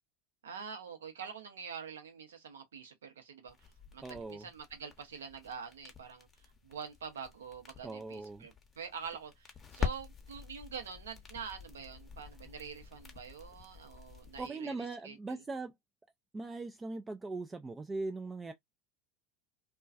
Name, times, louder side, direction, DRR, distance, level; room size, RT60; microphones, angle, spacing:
voice 1, 0.4-3.5 3.9-6.3 6.6-15.4, right 6 dB, 85° right, 0.7 m, -46 dB
sound 1, 3.5-14.5, left 7 dB, 25° left, 0.7 m, -45 dB
voice 2, 4.0-4.5 7.8-8.5 14.4-15.7 16.3-18.5, right 3 dB, 20° right, 0.3 m, -40 dB
2.3 x 2.2 x 2.4 m
hypercardioid pair, 85°, 0 cm